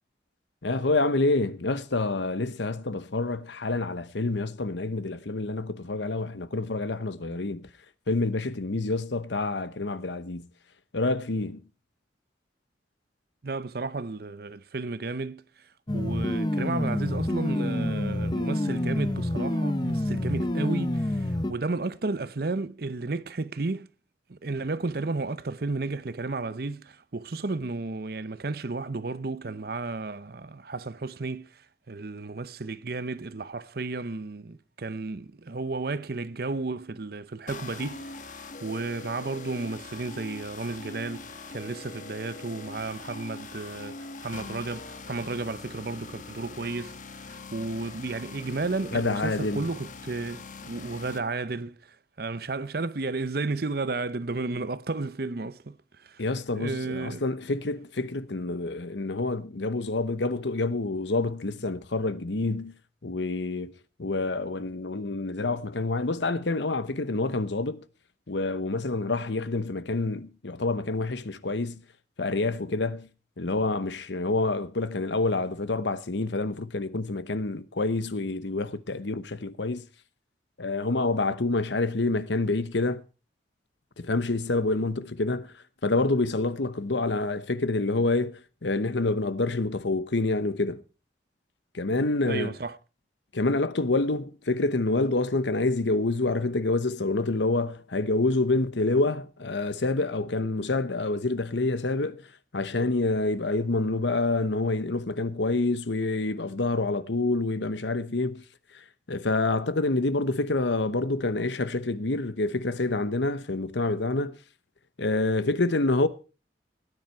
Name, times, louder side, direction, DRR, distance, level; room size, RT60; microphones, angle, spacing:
voice 1, 0.6-7.7 8.1-10.5 10.9-11.6 48.9-49.6 56.2-62.7 63.0-63.7 64.0-67.8 68.3-71.8 72.2-73.1 73.4-79.9 80.6-83.0 84.0-85.5 85.8-90.8 91.7-92.5 93.3-102.2 102.5-108.4 109.1-114.4 115.0-116.1, left 2 dB, 75° left, 1.0 m, -27 dB
voice 2, 13.4-15.4 15.9-23.9 24.3-31.5 31.9-38.1 38.6-47.0 47.5-51.7 52.2-55.8 56.0-56.2 56.5-57.2 92.3-92.8, right 3 dB, 55° right, 0.7 m, -33 dB
sound 1, 15.9-21.5, left 1 dB, 25° left, 0.7 m, -27 dB
sound 2, 37.5-51.2, left 3 dB, 45° left, 1.2 m, -42 dB
17.0 x 10.0 x 4.6 m
head